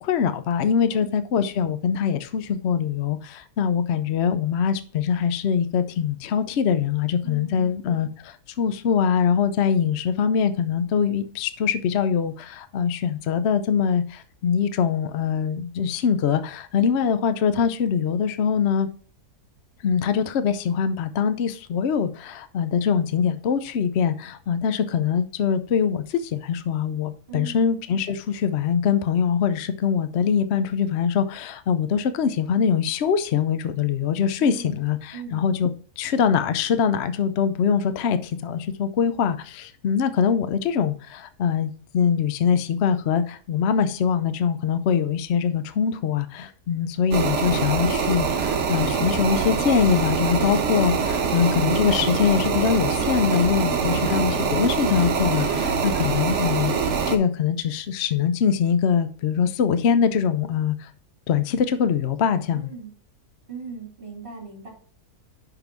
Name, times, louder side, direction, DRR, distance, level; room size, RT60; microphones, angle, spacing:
voice 1, 0.0-18.9 19.8-35.7 36.0-60.9 61.3-62.7, left 7 dB, 60° left, 0.8 m, -23 dB
voice 2, 7.2-7.7 27.3-27.6 34.4-34.8 35.1-35.4 53.7-54.0 62.5-62.9 63.5-64.7, right 5 dB, 35° right, 3.0 m, -38 dB
sound 1, 47.1-57.2, right 6 dB, 55° right, 1.1 m, -24 dB
5.9 x 5.3 x 5.9 m
omnidirectional pair, 1.6 m